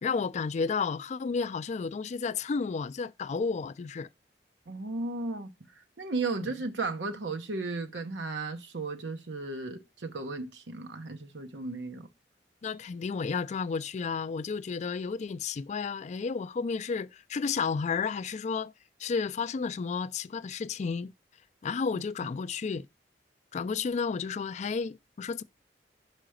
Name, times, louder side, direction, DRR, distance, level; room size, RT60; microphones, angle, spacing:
voice 1, 0.0-4.1 12.6-18.7 19.0-21.1 21.6-22.9 23.5-25.4, left 5 dB, 40° left, 0.3 m, -32 dB
voice 2, 4.7-5.5 6.0-12.1 21.9-22.0, right 3 dB, 90° right, 0.9 m, -35 dB
5.7 x 4.9 x 6.3 m
head